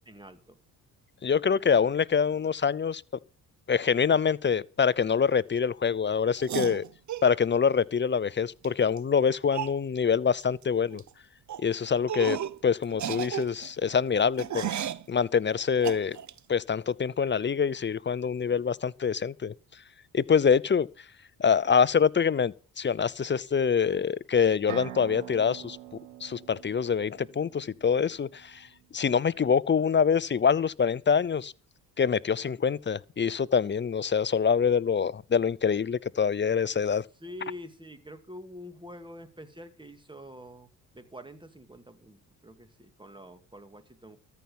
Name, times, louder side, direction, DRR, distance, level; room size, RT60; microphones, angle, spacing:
voice 1, 0.1-0.6 37.2-40.7 40.9-44.2, equal, 10° right, 2.3 m, -46 dB
voice 2, 1.2-3.0 3.7-6.8 7.2-11.0 11.6-14.7 15.1-16.2 16.5-19.5 20.1-20.9 21.4-25.8 26.2-28.7 28.9-31.5 32.0-37.0, left 6 dB, 25° left, 0.6 m, -25 dB
sound 1, 6.4-7.3 8.6-8.7 9.0-9.1 9.5-9.8 10.4-10.6 10.9-11.1 11.5-11.6 12.1-12.6 12.9-15.1 15.8-16.4, right 10 dB, 45° right, 0.7 m, -33 dB
sound 2, 24.7-28.4, right 12 dB, 90° right, 1.6 m, -44 dB
13.5 x 5.9 x 8.7 m
supercardioid pair, 65°, 41 cm